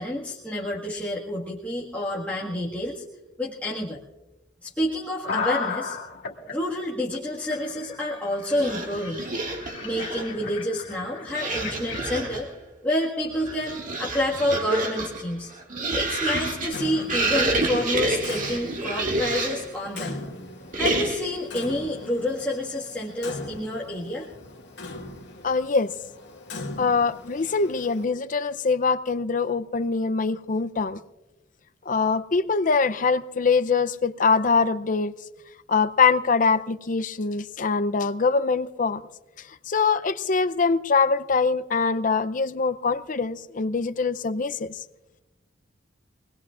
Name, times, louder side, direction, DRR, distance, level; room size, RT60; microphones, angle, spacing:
voice 1, 0.0-3.0 3.4-4.0 4.6-6.0 6.5-9.3 9.8-12.5 12.8-15.5 15.9-20.2 20.7-24.3, left 1 dB, 10° left, 1.7 m, -28 dB
sound 1, 5.2-6.5 7.1-7.2 7.5-12.4, left 5 dB, 85° left, 2.2 m, -35 dB
sound 2, 8.5-10.4 11.3-12.5 13.2-19.7 20.7-21.4, right 2 dB, 45° right, 2.0 m, -28 dB
Clock, 16.7-28.0, left 2 dB, 65° left, 1.8 m, -40 dB
voice 2, 25.4-25.9 26.8-31.0 31.9-35.1 35.7-39.0 39.7-44.7, left 4 dB, 45° left, 0.6 m, -23 dB
25.0 x 19.5 x 2.5 m
head